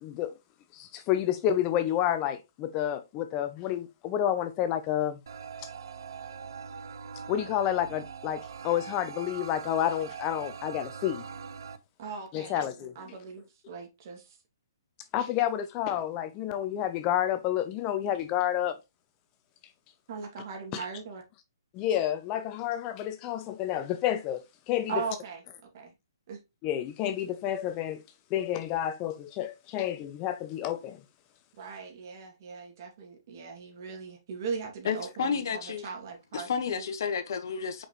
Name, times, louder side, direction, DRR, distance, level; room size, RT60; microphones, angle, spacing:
voice 1, 0.0-0.3 0.7-5.2 7.3-11.2 12.3-12.9 15.1-18.8 20.7-20.8 21.7-24.9 26.6-28.0 28.3-31.0, left 11 dB, 30° left, 0.5 m, -30 dB
sound 1, 5.3-11.8, right 6 dB, 70° right, 0.7 m, -42 dB
voice 2, 12.0-14.4 20.1-21.2 24.9-25.9 26.3-26.4 31.6-36.8, right 5 dB, 45° right, 2.3 m, -39 dB
voice 3, 34.8-35.9 36.3-37.8, left 6 dB, 60° left, 1.2 m, -31 dB
6.2 x 4.9 x 3.1 m
hypercardioid pair, 135°, 2 cm